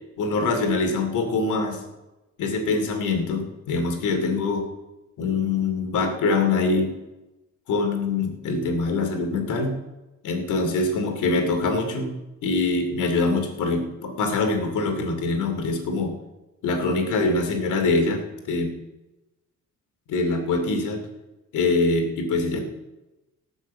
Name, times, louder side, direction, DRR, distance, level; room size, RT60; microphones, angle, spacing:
voice 1, 0.2-1.8 2.4-4.7 5.2-6.9 7.7-9.8 10.2-12.1 12.4-16.2 16.6-18.7 20.1-21.0 21.5-22.6, left 3 dB, 80° left, 5 dB, 2.8 m, -24 dB
18.0 x 6.6 x 7.4 m, 1.0 s
cardioid pair, 90°, 30 cm